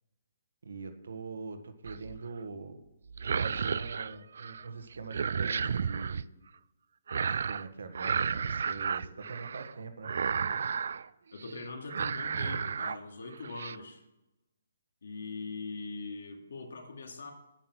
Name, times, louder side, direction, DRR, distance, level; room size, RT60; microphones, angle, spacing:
voice 1, 0.6-2.8 3.3-6.2 7.2-10.2, right 4 dB, 80° right, 7 dB, 1.5 m, -43 dB
sound 1, 1.9-2.3 3.1-4.7 4.9-6.2 7.1-7.7 7.9-9.7 10.0-11.1 11.4-11.6 11.9-13.0 13.3-13.8, right 6 dB, 55° right, 0.3 m, -32 dB
voice 2, 10.3-10.7 11.3-14.0 15.0-17.3, left 3 dB, 80° left, 4 dB, 2.3 m, -42 dB
9.9 x 8.9 x 6.1 m, 0.96 s
hypercardioid pair, 175°, 0 cm